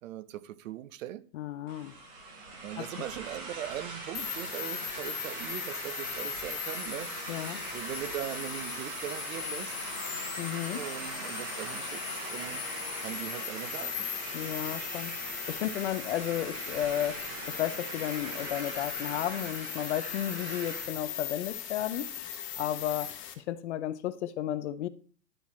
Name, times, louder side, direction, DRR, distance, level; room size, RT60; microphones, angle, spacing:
voice 1, 0.0-1.2 2.6-10.0 10.7-12.6 13.0-14.1, right 13 dB, 50° right, 0.7 m, -40 dB
voice 2, 1.3-2.0 2.8-2.9 7.3-7.6 10.4-10.8 14.3-22.1 22.6-24.9, left 12 dB, 45° left, 0.5 m, -33 dB
sound 1, 1.7-21.0, right 3 dB, 10° right, 0.4 m, -41 dB
sound 2, 4.1-23.3, left 11 dB, 25° left, 1.0 m, -39 dB
11.5 x 4.5 x 4.2 m
hypercardioid pair, 140°, 50 cm